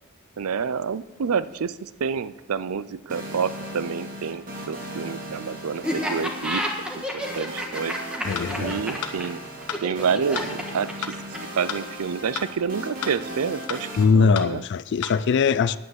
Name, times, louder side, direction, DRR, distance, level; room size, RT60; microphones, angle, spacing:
voice 1, 0.4-8.2 8.6-9.4 9.8-11.2 11.5-13.9 14.1-14.7, right 6 dB, 80° right, 0.5 m, -28 dB
sound 1, 3.1-14.0, equal, 40° right, 2.2 m, -37 dB
Laughter, 5.8-11.6, equal, 5° right, 1.6 m, -30 dB
voice 2, 8.2-8.8 14.0-15.8, left 5 dB, 55° left, 0.3 m, -21 dB
sound 2, 8.4-8.5 9.0-9.2 9.7-9.8 10.3-10.5 11.0-11.2 11.7-11.8 12.4-12.5 13.0-13.2 13.7-13.8 14.3-14.5 15.0-15.1, left 6 dB, 85° left, 1.1 m, -31 dB
9.6 x 9.6 x 6.4 m
head